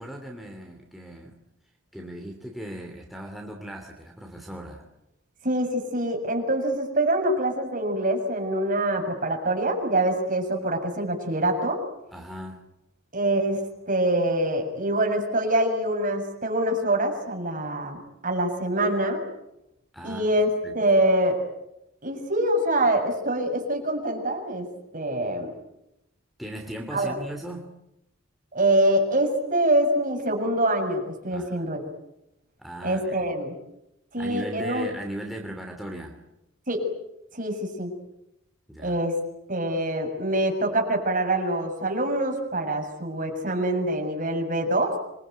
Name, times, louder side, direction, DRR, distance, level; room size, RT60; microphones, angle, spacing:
voice 1, 0.0-1.4 1.9-4.9 12.1-12.6 19.9-20.3 20.6-20.8 26.4-27.7 31.3-31.7 32.6-33.2 34.2-36.2 38.7-39.0, right 1 dB, ahead, 1 dB, 3.0 m, -38 dB
voice 2, 5.4-11.8 13.1-13.6 13.9-18.0 18.2-19.2 20.0-21.4 22.0-24.7 24.9-25.5 26.9-27.2 28.5-31.8 32.8-33.5 34.1-34.9 36.7-36.9 37.3-37.9 38.8-39.1 39.5-44.9, right 1 dB, 40° right, 3 dB, 7.0 m, -25 dB
26.5 x 24.0 x 9.4 m, 0.86 s
head